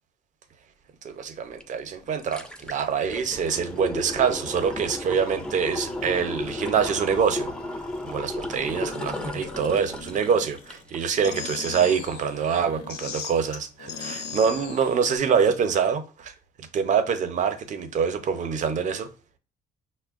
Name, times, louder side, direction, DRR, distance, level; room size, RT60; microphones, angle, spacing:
voice 1, 1.0-7.5 8.0-16.3 16.7-19.1, right 6 dB, 45° right, 0.6 m, -25 dB
sound 1, 1.6-1.7 2.0-11.1 11.4-11.5, left 1 dB, 5° left, 0.4 m, -34 dB
sound 2, 2.0-2.4 3.1-5.5 5.8-8.2 8.4-10.8 11.1-15.2, left 5 dB, 80° left, 0.6 m, -40 dB
5.7 x 2.1 x 2.4 m
cardioid pair, 110°, 17 cm